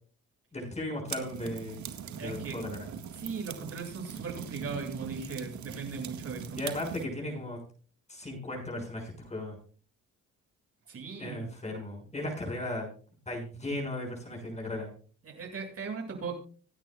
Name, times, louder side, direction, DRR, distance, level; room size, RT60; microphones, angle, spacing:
voice 1, 0.5-1.9 2.2-2.9 6.6-7.6 8.1-9.6 11.2-12.9 13.3-14.9, left 1 dB, 20° left, 1 dB, 6.3 m, -36 dB
sound 1, 1.1-7.0, right 8 dB, 70° right, 1.8 m, -41 dB
voice 2, 2.2-2.6 3.2-6.6 7.2-7.3 10.9-11.4 15.2-16.4, right 5 dB, 50° right, 0 dB, 7.6 m, -38 dB
26.0 x 9.6 x 2.4 m, 0.40 s
cardioid pair, 90°, 30 cm